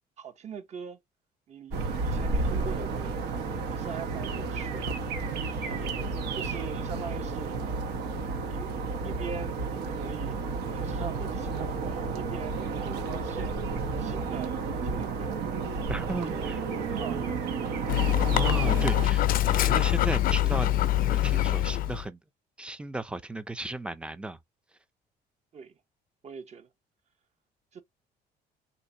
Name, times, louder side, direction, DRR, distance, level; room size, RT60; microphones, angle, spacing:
voice 1, 0.2-1.0 1.5-3.2 3.7-5.2 5.5-7.7 8.5-8.7 9.0-10.4 10.7-13.7 14.0-15.3 16.3-16.5 16.9-17.8 25.5-25.8 26.2-26.7 27.7-27.8, right 6 dB, 40° right, 0.9 m, -42 dB
sound 1, 1.7-19.1, right 4 dB, 75° right, 1.0 m, -32 dB
voice 2, 15.9-16.6 17.9-18.0 18.3-22.2 22.6-24.4, right 2 dB, 5° right, 0.4 m, -35 dB
Dog, 17.9-22.0, left 13 dB, 55° left, 0.4 m, -24 dB
3.4 x 2.7 x 2.6 m
cardioid pair, 110°, 17 cm